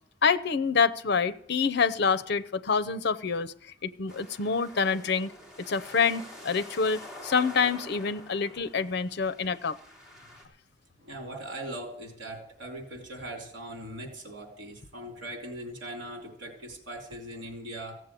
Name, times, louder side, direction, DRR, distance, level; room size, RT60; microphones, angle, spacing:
voice 1, 0.2-3.5 3.8-5.3 5.6-9.8, left 5 dB, 60° left, 11 dB, 0.7 m, -27 dB
sound 1, 4.1-10.5, left 1 dB, 5° right, 3.4 m, -47 dB
voice 2, 11.0-18.0, right 1 dB, 75° right, 2 dB, 3.4 m, -40 dB
15.5 x 7.4 x 8.3 m, 0.67 s
head